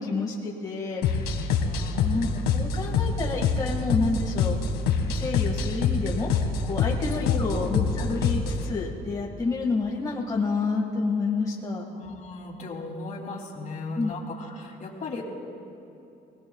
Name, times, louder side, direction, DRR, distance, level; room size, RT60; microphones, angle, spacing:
voice 1, 0.0-1.5 1.9-4.6 5.1-11.8 14.0-14.1, left 3 dB, 20° left, -3 dB, 1.9 m, -29 dB
sound 1, 1.0-8.7, left 5 dB, 80° left, 1.8 m, -26 dB
voice 2, 1.6-2.6 2.8-3.1 7.2-8.1 11.9-15.3, left 3 dB, 45° left, 0 dB, 2.8 m, -37 dB
28.0 x 19.5 x 2.4 m, 2.8 s
cardioid pair, 110°, 17 cm